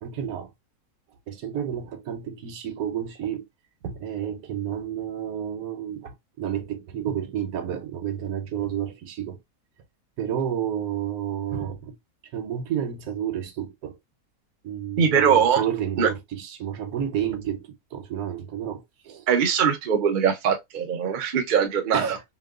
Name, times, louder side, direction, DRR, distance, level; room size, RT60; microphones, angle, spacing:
voice 1, 0.0-0.5 1.3-3.5 3.8-9.4 10.2-12.0 12.3-14.0 14.6-19.3 21.9-22.2, right 9 dB, 80° right, 1.0 m, -30 dB
voice 2, 15.0-15.6 16.0-16.1 19.3-22.0, right 7 dB, 55° right, 0.5 m, -21 dB
2.9 x 2.1 x 2.3 m
omnidirectional pair, 1.5 m